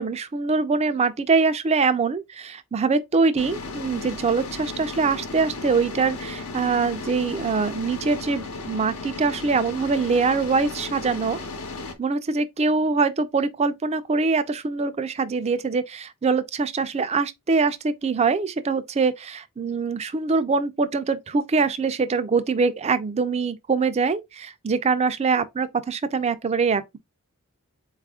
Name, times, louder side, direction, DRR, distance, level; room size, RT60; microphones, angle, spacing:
voice 1, 0.0-11.4 12.0-27.0, right 4 dB, 30° right, 0.4 m, -23 dB
sound 1, 3.4-11.9, left 3 dB, 80° left, 1.0 m, -35 dB
4.1 x 2.4 x 3.5 m
head